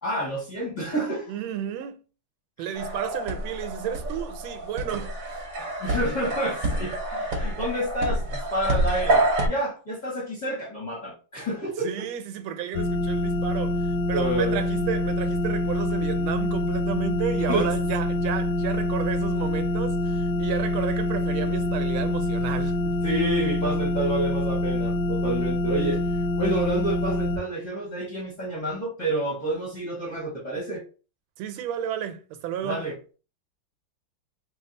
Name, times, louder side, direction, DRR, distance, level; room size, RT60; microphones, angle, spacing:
voice 1, 0.0-1.4 2.6-2.9 5.8-12.0 14.1-14.6 17.5-17.7 23.0-30.8 32.6-32.9, right 1 dB, 35° left, 0.7 m, -29 dB
voice 2, 1.3-2.0 2.6-5.8 11.8-23.0 31.4-32.8, right 9 dB, 90° right, 1.4 m, -32 dB
sound 1, 2.7-9.5, right 1 dB, 55° right, 1.0 m, -27 dB
sound 2, 12.7-27.4, left 1 dB, 70° left, 1.0 m, -26 dB
3.3 x 2.3 x 3.8 m
omnidirectional pair, 2.2 m